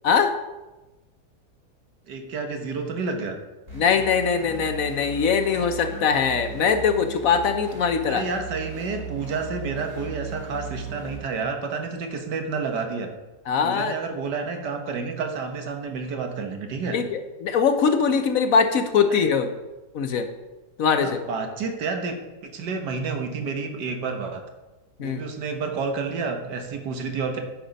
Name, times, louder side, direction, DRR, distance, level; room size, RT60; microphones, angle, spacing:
voice 1, 2.1-3.4 8.1-13.1 13.6-17.0 19.2-19.3 21.0-24.4 25.0-27.4, right 4 dB, 90° right, 4 dB, 1.7 m, -30 dB
voice 2, 3.7-8.2 13.5-13.9 16.9-19.5 19.9-20.3 20.8-21.2 25.0-25.2, left 6 dB, 65° left, 7 dB, 1.0 m, -22 dB
sound 1, 3.7-11.2, right 4 dB, 40° right, 2.7 m, -37 dB
10.5 x 5.0 x 5.2 m, 1.1 s
omnidirectional pair, 1.8 m